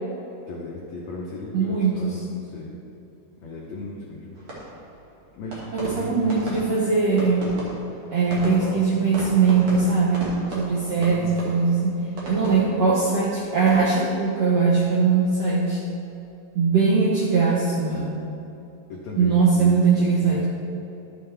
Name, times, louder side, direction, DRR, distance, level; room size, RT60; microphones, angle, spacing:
voice 1, 0.5-2.7 3.4-4.4 5.3-6.4 8.4-8.9 10.9-11.6 12.6-12.9 18.9-20.5, left 2 dB, 85° left, -3 dB, 1.5 m, -36 dB
voice 2, 1.5-2.2 5.7-7.5 8.1-12.0 12.3-15.8 16.5-18.2 19.2-20.5, right 4 dB, 75° right, -5 dB, 1.5 m, -21 dB
sound 1, 4.3-15.5 15.7-16.2, right 1 dB, 45° right, 2.0 m, -37 dB
12.0 x 7.3 x 3.4 m, 2.9 s
omnidirectional pair, 4.3 m